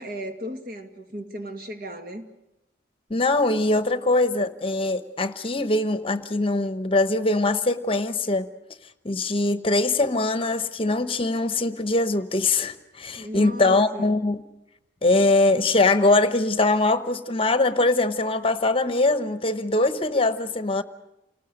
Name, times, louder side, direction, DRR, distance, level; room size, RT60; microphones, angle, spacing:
voice 1, 0.0-2.3 13.2-14.1, equal, 55° right, 2.2 m, -36 dB
voice 2, 3.1-8.5 9.0-14.4 15.0-20.8, left 2 dB, 30° left, 0.9 m, -22 dB
28.5 x 19.5 x 6.5 m
head